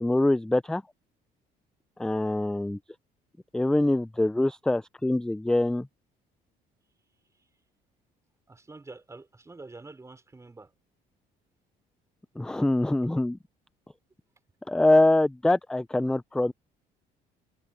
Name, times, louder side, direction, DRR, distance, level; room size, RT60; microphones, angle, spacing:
voice 1, 0.0-0.8 2.0-2.8 3.5-5.9 12.4-13.4 14.7-16.5, left 1 dB, 5° left, 0.3 m, -24 dB
voice 2, 8.5-10.7, right 3 dB, 15° right, 5.2 m, -46 dB
cardioid pair, 110°, 17 cm